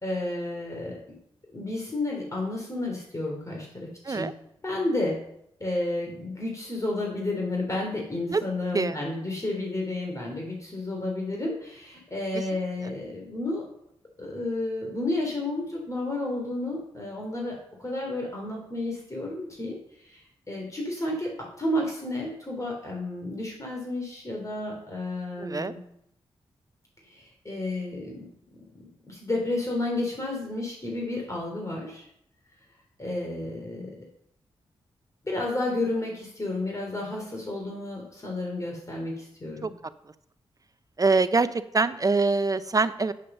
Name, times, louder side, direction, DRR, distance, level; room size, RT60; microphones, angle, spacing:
voice 1, 0.0-1.0 1.5-4.3 4.6-5.2 5.6-13.6 14.2-21.3 21.6-25.8 27.0-28.2 29.1-32.1 33.0-33.9 35.2-39.7, left 2 dB, 30° left, -1 dB, 3.2 m, -31 dB
voice 2, 25.4-25.7 39.6-39.7 41.0-43.1, right 3 dB, 35° right, 13 dB, 0.6 m, -24 dB
8.8 x 6.7 x 6.7 m, 0.73 s
cardioid pair, 60°, 10 cm